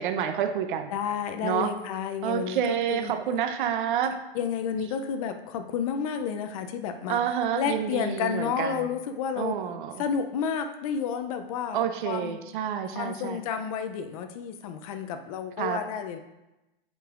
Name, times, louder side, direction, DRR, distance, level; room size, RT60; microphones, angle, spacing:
voice 1, 0.0-0.9 1.4-1.7 2.2-4.1 7.1-8.9 9.4-10.0 11.7-13.4 15.6-15.8, right 9 dB, 55° right, 7 dB, 0.7 m, -28 dB
voice 2, 0.9-3.1 4.3-7.2 7.6-9.5 10.0-12.4 13.0-16.2, left 7 dB, 35° left, 7 dB, 0.5 m, -31 dB
8.7 x 5.2 x 2.5 m, 0.98 s
supercardioid pair, 160°, 31 cm